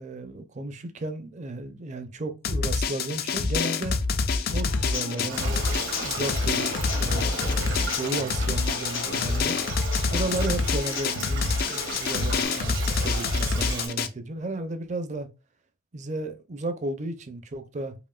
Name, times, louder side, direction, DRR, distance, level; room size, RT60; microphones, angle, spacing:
voice 1, 0.0-4.0 4.5-9.6 10.1-15.3 15.9-18.0, right 2 dB, 35° right, 0.5 m, -34 dB
Drum, 2.4-14.1, left 4 dB, 50° left, 0.3 m, -27 dB
Human voice / Acoustic guitar / Drum, 4.5-12.4, left 2 dB, 80° left, 0.7 m, -38 dB
Stream, 5.3-13.9, right 3 dB, 85° right, 1.6 m, -36 dB
4.9 x 2.6 x 2.3 m
head